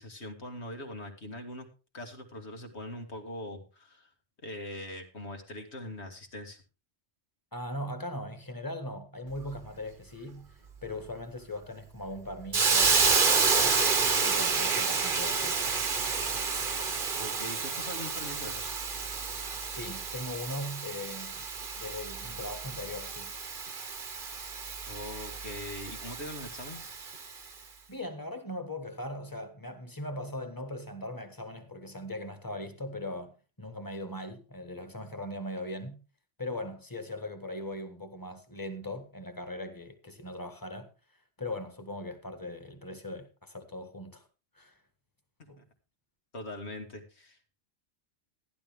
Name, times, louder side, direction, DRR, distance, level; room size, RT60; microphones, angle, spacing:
voice 1, 0.0-1.7 1.9-4.1 4.4-6.6 17.2-18.8 24.9-26.9 45.6-45.7 46.3-47.4, left 1 dB, 70° left, 2.4 m, -42 dB
voice 2, 7.5-10.5 10.8-13.8 14.2-15.7 19.7-21.4 21.8-23.3 27.9-36.0 36.4-40.9 41.4-44.2 44.6-44.8 45.5-45.6, left 1 dB, 20° left, 1.7 m, -39 dB
Hiss, 12.5-27.3, right 4 dB, 50° right, 1.3 m, -30 dB
14.5 x 11.0 x 3.6 m
omnidirectional pair, 1.2 m